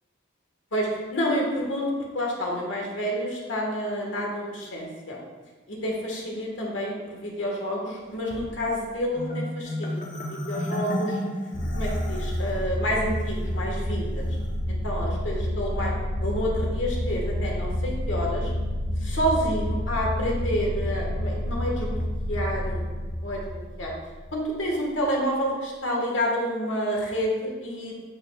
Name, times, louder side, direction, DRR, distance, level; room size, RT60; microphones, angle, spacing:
voice 1, 0.7-1.9 2.1-5.2 5.7-11.2 11.7-14.2 14.7-15.9 16.2-18.5 19.0-22.8 23.2-23.9 24.3-27.9, equal, 85° left, -2 dB, 1.6 m, -29 dB
Marimba xylophone, 9.2-12.5, left 1 dB, 45° left, 1.0 m, -32 dB
sound 1, 11.5-24.4, left 1 dB, 30° left, 1.7 m, -29 dB
8.9 x 6.1 x 2.4 m, 1.3 s
head